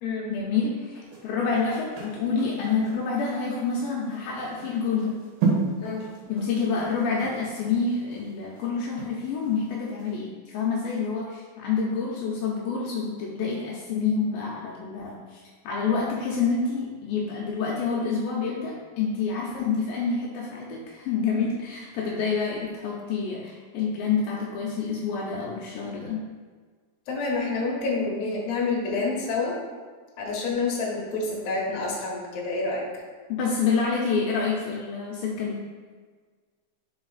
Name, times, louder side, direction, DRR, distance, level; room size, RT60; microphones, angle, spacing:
voice 1, 0.3-5.1 6.3-26.2 33.3-35.6, left 5 dB, 80° left, -3 dB, 2.3 m, -28 dB
sound 1, 1.0-9.6 10.0-10.1, right 4 dB, 65° right, 2.5 m, -33 dB
voice 2, 27.1-29.6 30.2-32.8, left 3 dB, 60° left, -4 dB, 2.1 m, -28 dB
5.1 x 4.7 x 4.0 m, 1.5 s
omnidirectional pair, 4.3 m